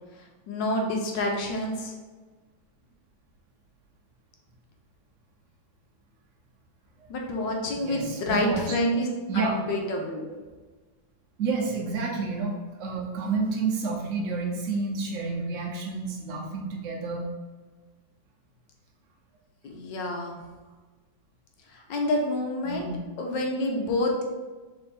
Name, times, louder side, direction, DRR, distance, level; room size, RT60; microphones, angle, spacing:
voice 1, 0.5-1.9 7.1-9.1 9.3-10.2 19.6-20.4 21.7-22.9 23.2-24.2, left 1 dB, 70° left, 1 dB, 1.4 m, -28 dB
voice 2, 7.8-8.6 9.3-9.5 10.3-10.4 11.4-17.4 22.6-23.0, right 4 dB, 55° right, -1 dB, 1.0 m, -30 dB
3.5 x 3.2 x 4.3 m, 1.3 s
omnidirectional pair, 2.1 m